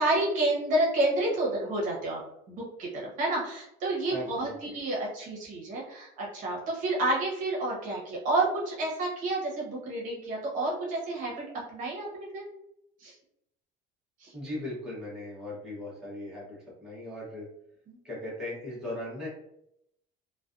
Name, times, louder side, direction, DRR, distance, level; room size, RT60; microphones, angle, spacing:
voice 1, 0.0-2.2 2.5-12.4 13.0-13.1 14.2-14.3 17.9-18.0, right 2 dB, 45° right, -3 dB, 0.8 m, -30 dB
voice 2, 4.1-4.8 14.3-17.5 18.0-19.3, left 1 dB, 5° right, -8 dB, 0.8 m, -38 dB
2.4 x 2.2 x 2.4 m, 0.76 s
cardioid pair, 170°, 18 cm